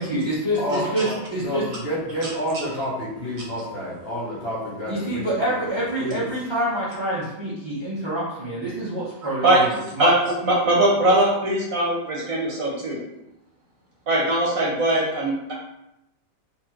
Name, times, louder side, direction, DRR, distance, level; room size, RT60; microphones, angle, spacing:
voice 1, 0.0-1.0 1.3-1.6 4.9-9.7 9.9-10.1, right 1 dB, 25° right, -10 dB, 0.6 m, -26 dB
voice 2, 0.5-1.1 1.4-6.2, equal, 40° left, -6 dB, 1.2 m, -29 dB
voice 3, 10.0-13.0 14.1-15.5, right 1 dB, 55° right, -4 dB, 1.3 m, -21 dB
4.2 x 2.9 x 4.4 m, 0.87 s
omnidirectional pair, 2.0 m